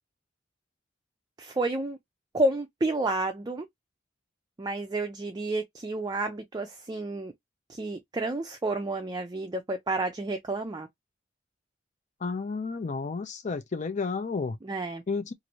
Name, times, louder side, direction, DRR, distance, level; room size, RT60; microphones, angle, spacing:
voice 1, 1.4-2.0 2.3-3.7 4.6-7.3 7.7-10.9 14.6-15.0, right 2 dB, 20° right, 0.4 m, -30 dB
voice 2, 12.2-14.6 15.1-15.3, left 4 dB, 40° left, 0.5 m, -31 dB
2.7 x 2.5 x 3.0 m
head